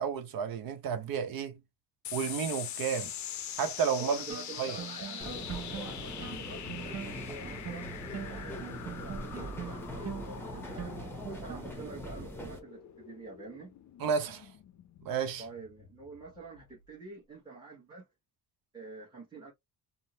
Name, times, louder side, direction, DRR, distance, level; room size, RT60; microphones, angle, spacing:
voice 1, 0.0-1.6 2.1-3.1 3.6-4.2 4.6-4.8 14.0-14.5 15.0-15.4, right 7 dB, 60° right, 0.9 m, -31 dB
sound 1, 2.0-16.8, left 10 dB, 45° left, 0.5 m, -44 dB
voice 2, 4.0-7.9 8.3-13.7 15.4-18.1 18.7-19.5, right 3 dB, 10° right, 1.1 m, -47 dB
sound 2, 4.3-11.9, right 8 dB, 40° right, 0.6 m, -44 dB
sound 3, 5.2-12.6, equal, 5° left, 0.8 m, -42 dB
3.6 x 2.1 x 2.8 m
cardioid pair, 170°, 40 cm